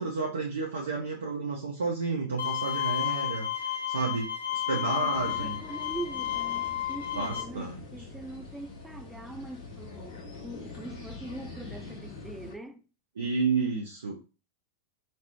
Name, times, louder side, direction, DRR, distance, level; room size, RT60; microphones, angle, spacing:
voice 1, 0.0-5.6 7.1-7.8 8.3-8.4 13.2-14.1, right 4 dB, 70° right, 0.6 m, -31 dB
Bowed string instrument, 2.4-7.4, left 11 dB, 70° left, 0.5 m, -32 dB
voice 2, 4.7-10.2 10.4-12.9, right 2 dB, 5° right, 0.4 m, -42 dB
sound 1, 5.1-12.5, left 3 dB, 50° left, 1.1 m, -44 dB
3.2 x 2.0 x 2.8 m
figure-of-eight pair, 90°, 0 cm